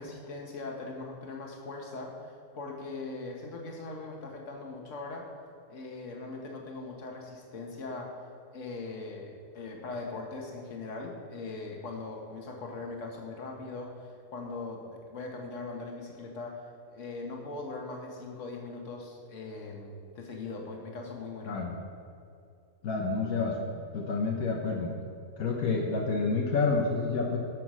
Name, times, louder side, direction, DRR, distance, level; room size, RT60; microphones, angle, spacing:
voice 1, 0.0-5.3 5.7-8.1 8.5-21.6, left 3 dB, 60° left, 0 dB, 1.7 m, -40 dB
voice 2, 22.8-23.6 23.9-24.9 25.4-27.4, left 4 dB, 80° left, -1 dB, 1.5 m, -28 dB
12.0 x 6.0 x 6.1 m, 2.4 s
omnidirectional pair, 1.5 m